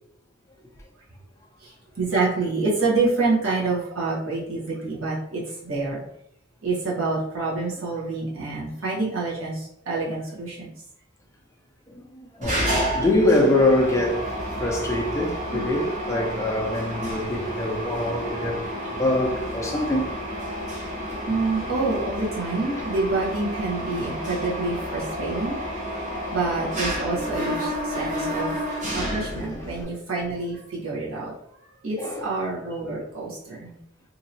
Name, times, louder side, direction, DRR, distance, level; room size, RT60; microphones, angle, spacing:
voice 1, 1.6-6.0 6.6-10.7 15.5-15.7 21.3-25.6 26.3-28.6 28.9-31.3 31.8-33.7, right 3 dB, 80° right, 1.2 m, -27 dB
voice 2, 11.9-14.3 14.6-18.6 18.9-20.1 21.1-21.2 27.4-27.6 29.3-29.9 31.9-32.3, left 1 dB, 15° left, 0.5 m, -24 dB
Mechanisms, 12.4-29.8, equal, 35° right, 0.6 m, -30 dB
2.9 x 2.7 x 2.6 m
head